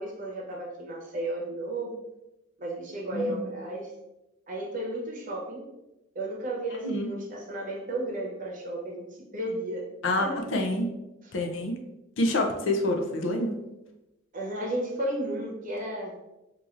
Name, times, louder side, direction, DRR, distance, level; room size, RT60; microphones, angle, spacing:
voice 1, 0.0-2.0 2.6-3.9 4.5-5.6 6.1-9.1 9.3-9.8 10.2-10.4 11.2-11.3 14.3-16.1, right 1 dB, 40° right, -2 dB, 0.8 m, -33 dB
voice 2, 10.0-10.9 11.3-11.8 12.2-13.5, left 1 dB, 65° left, 3 dB, 0.5 m, -27 dB
4.5 x 2.5 x 2.5 m, 0.96 s
head